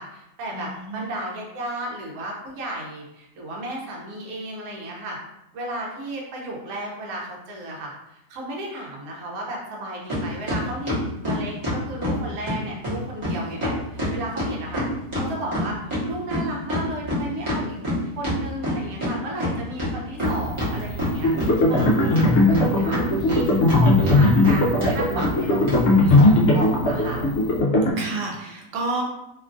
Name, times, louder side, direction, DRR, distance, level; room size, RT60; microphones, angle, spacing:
voice 1, 0.0-5.2 5.5-14.8 15.1-15.8 16.1-17.8 18.2-27.2, right 1 dB, 65° right, -2 dB, 1.1 m, -34 dB
voice 2, 0.5-1.1 21.7-22.4 28.0-29.0, right 2 dB, 90° right, -1 dB, 1.3 m, -31 dB
sound 1, 10.1-10.2 10.5-12.2 12.5-12.6 12.8-13.0 13.2-13.3 13.6-16.0 16.3-19.1 19.4-19.5 19.8-20.7 21.0-21.9 22.2-23.8 24.1-24.5 24.8-24.9 25.2-25.3 25.7-25.8 26.1-26.3, left 1 dB, 25° right, 0.7 m, -26 dB
sound 2, 20.2-27.6, right 4 dB, 45° left, 1.0 m, -35 dB
sound 3, 21.2-27.9, left 2 dB, 75° left, 0.6 m, -19 dB
2.9 x 2.3 x 2.5 m, 0.89 s
omnidirectional pair, 1.7 m